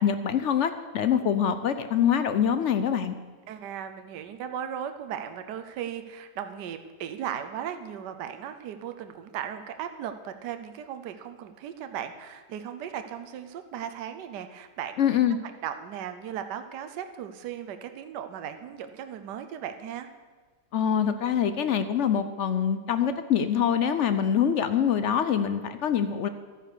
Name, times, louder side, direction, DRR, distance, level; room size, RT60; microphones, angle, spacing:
voice 1, 0.0-3.1 15.0-15.4 20.7-26.3, left 8 dB, 70° left, 11 dB, 0.7 m, -24 dB
voice 2, 3.5-15.2 15.4-20.1, right 9 dB, 75° right, 8 dB, 1.4 m, -37 dB
12.5 x 9.2 x 6.7 m, 1.5 s
omnidirectional pair, 1.9 m